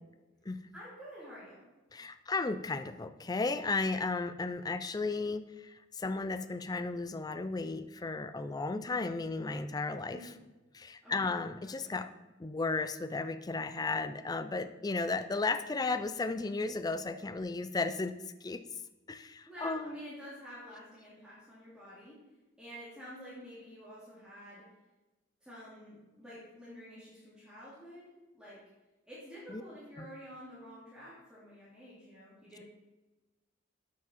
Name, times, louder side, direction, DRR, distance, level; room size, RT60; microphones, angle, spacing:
voice 1, 0.7-1.6 10.1-10.3 11.0-11.3 11.6-12.0 19.5-22.2 22.6-24.7 25.4-28.6 29.1-32.6, equal, 5° right, -10 dB, 2.4 m, -49 dB
voice 2, 1.9-10.3 10.7-12.1 12.4-18.6 19.1-20.0 29.5-29.6 30.0-30.1, left 3 dB, 20° left, 11 dB, 0.4 m, -34 dB
8.1 x 7.5 x 4.3 m, 1.1 s
head